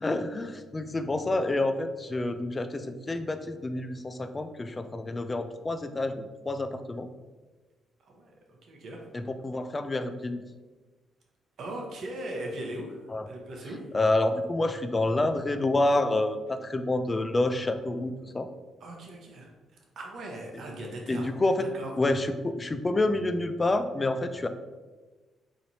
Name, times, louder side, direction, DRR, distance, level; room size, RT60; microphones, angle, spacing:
voice 1, 0.0-7.1 9.1-10.4 13.1-13.3 13.9-18.5 21.1-21.7 21.9-24.5, left 2 dB, 25° left, 9 dB, 0.3 m, -28 dB
voice 2, 8.1-9.0 11.6-13.8 18.8-19.5 20.0-21.3 21.6-21.9, right 1 dB, 65° right, 0 dB, 0.8 m, -39 dB
4.0 x 3.0 x 2.8 m, 1.3 s
cardioid pair, 90°, 0 cm